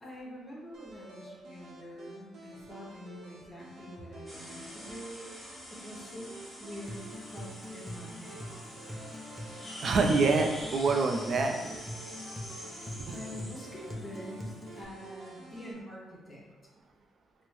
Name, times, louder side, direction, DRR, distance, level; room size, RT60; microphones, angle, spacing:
voice 1, 0.0-8.5 13.1-16.4, equal, 25° left, -5 dB, 1.0 m, -46 dB
sound 1, 0.7-15.7, right 2 dB, 80° right, 0.8 m, -51 dB
Water Bathroom Toilet Flush, 4.3-15.6, equal, 10° right, 1.3 m, -46 dB
Acoustic guitar, 6.9-14.8, equal, 5° left, 0.6 m, -43 dB
voice 2, 9.8-11.8 12.9-13.2, right 3 dB, 50° right, 4 dB, 0.5 m, -27 dB
4.3 x 2.1 x 3.1 m, 1.1 s
cardioid pair, 90°, 0 cm